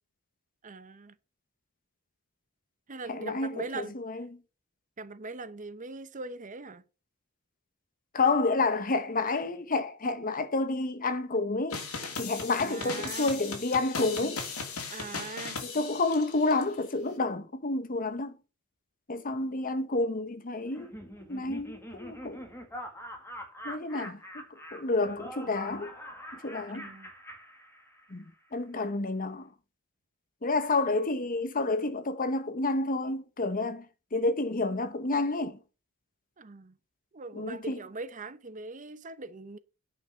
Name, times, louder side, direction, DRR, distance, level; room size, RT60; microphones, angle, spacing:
voice 1, 0.6-1.1 2.9-3.9 5.0-6.8 12.6-13.3 14.9-15.6 23.9-24.1 26.7-27.1 30.9-31.0 36.4-36.7 37.1-39.6, right 3 dB, 35° right, 0.8 m, -41 dB
voice 2, 3.1-4.4 8.1-11.8 12.2-14.4 15.6-18.4 19.1-20.9 21.3-22.4 23.6-24.2 24.7-25.9 26.3-26.9 28.1-28.2 28.5-29.5 30.4-33.8 34.1-35.6 37.3-37.8, left 3 dB, 40° left, 1.0 m, -29 dB
sound 1, 11.7-16.6, left 4 dB, 75° left, 2.7 m, -38 dB
Laughter, 20.7-28.2, equal, 10° left, 1.9 m, -44 dB
9.5 x 5.7 x 6.8 m
head